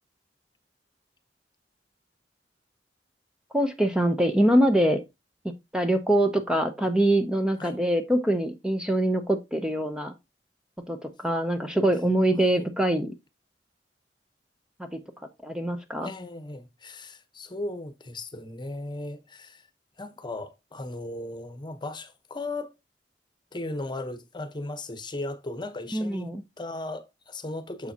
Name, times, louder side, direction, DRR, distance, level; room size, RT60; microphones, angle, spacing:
voice 1, 3.5-5.0 5.7-10.1 10.9-13.1 14.8-15.0 15.4-16.1 25.9-26.4, right 1 dB, 5° right, 0.7 m, -24 dB
voice 2, 16.0-19.6 20.0-22.7 23.5-26.3 26.6-27.9, left 2 dB, 25° left, 1.0 m, -36 dB
7.0 x 6.8 x 2.8 m
head